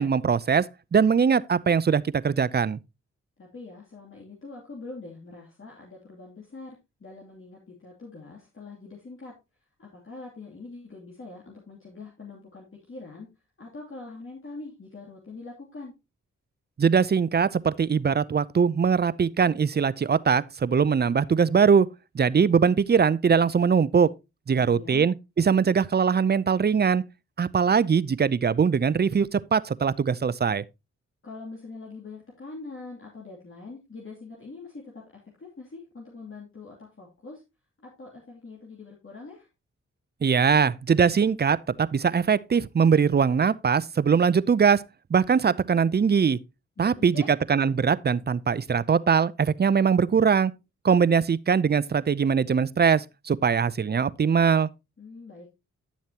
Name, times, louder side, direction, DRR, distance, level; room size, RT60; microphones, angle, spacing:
voice 1, 0.0-2.8 16.8-21.9 22.1-24.1 24.5-27.0 27.4-30.6 40.2-44.8 45.1-46.4 46.8-47.2 47.5-50.5 50.8-54.7, right 6 dB, 35° right, 0.5 m, -22 dB
voice 2, 3.4-9.3 9.8-13.3 13.6-15.9 24.5-25.1 31.2-37.4 37.8-39.5 46.8-47.4 55.0-55.5, left 3 dB, 45° left, 2.8 m, -43 dB
10.5 x 7.2 x 2.9 m
cardioid pair, 50°, 30 cm